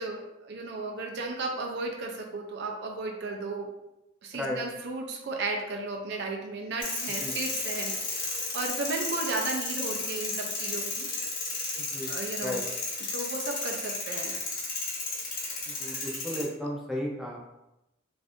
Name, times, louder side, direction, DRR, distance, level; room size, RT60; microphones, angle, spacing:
voice 1, 0.0-3.7 4.2-11.1 12.1-12.6 13.1-14.4, right 3 dB, 60° right, 2 dB, 0.4 m, -34 dB
sound 1, 6.8-16.4, left 3 dB, 45° left, 0.9 m, -33 dB
voice 2, 11.8-12.1 12.4-12.6 15.7-17.4, left 1 dB, ahead, -2 dB, 0.5 m, -34 dB
2.5 x 2.5 x 3.5 m, 0.92 s
head